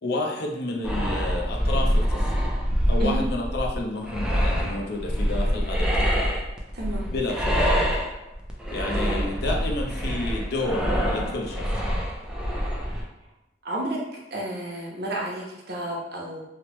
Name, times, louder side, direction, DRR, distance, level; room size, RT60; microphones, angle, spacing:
voice 1, 0.0-2.5 2.9-6.3 7.1-7.6 8.7-11.7, left 2 dB, 60° left, 1 dB, 0.5 m, -30 dB
sound 1, 0.8-13.0, equal, 5° right, 0.3 m, -25 dB
voice 2, 6.7-7.0 8.9-9.1 13.6-14.0 14.3-16.4, right 1 dB, 60° right, -2 dB, 0.7 m, -31 dB
3.0 x 2.0 x 3.0 m, 0.97 s
head